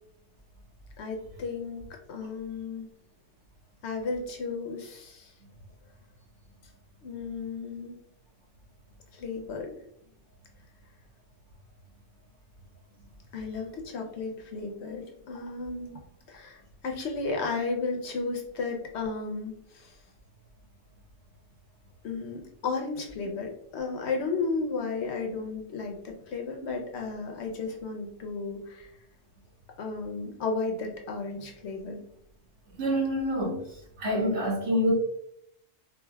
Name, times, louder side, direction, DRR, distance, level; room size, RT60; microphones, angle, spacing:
voice 1, 1.0-2.9 3.8-5.3 7.0-8.0 9.1-9.8 13.3-16.0 16.3-20.0 22.0-28.9 29.8-32.0, left 4 dB, 65° left, 2 dB, 0.9 m, -34 dB
voice 2, 32.8-33.6 34.0-34.9, equal, 65° right, -3 dB, 1.5 m, -26 dB
4.4 x 2.4 x 2.2 m, 0.72 s
omnidirectional pair, 1.3 m